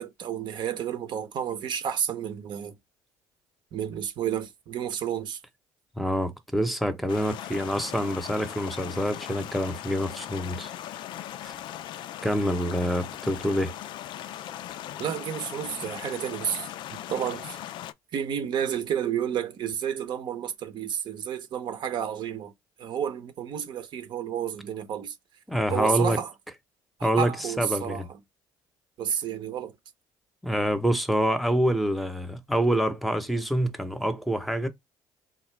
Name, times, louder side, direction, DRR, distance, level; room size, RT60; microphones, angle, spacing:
voice 1, 0.0-2.8 3.7-5.4 15.0-17.6 18.1-22.5 22.8-25.2 25.7-26.3 27.0-28.2 29.0-29.7, right 9 dB, 60° right, 0.8 m, -31 dB
voice 2, 6.0-10.7 11.4-11.5 12.2-13.7 25.5-26.2 27.0-27.3 27.6-28.1 30.4-34.7, equal, ahead, 0.8 m, -26 dB
sound 1, 7.1-17.9, left 12 dB, 65° left, 0.3 m, -39 dB
3.6 x 2.5 x 3.2 m
supercardioid pair, 75°, 9 cm